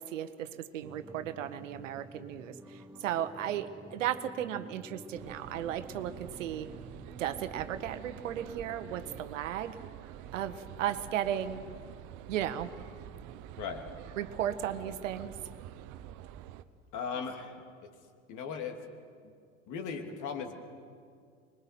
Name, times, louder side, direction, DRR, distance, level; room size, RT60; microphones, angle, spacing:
voice 1, 0.0-6.7 7.2-9.7 10.3-11.6 12.3-12.7 14.2-15.3, right 10 dB, 70° right, 11 dB, 1.2 m, -35 dB
sound 1, 0.8-9.2, right 1 dB, 5° right, 1.5 m, -51 dB
sound 2, 5.1-16.6, right 11 dB, 50° right, 1.0 m, -47 dB
voice 2, 16.9-17.6 18.3-18.8 19.7-20.5, left 6 dB, 50° left, 4 dB, 3.0 m, -37 dB
25.0 x 21.5 x 5.9 m, 2.2 s
figure-of-eight pair, 75°, 39 cm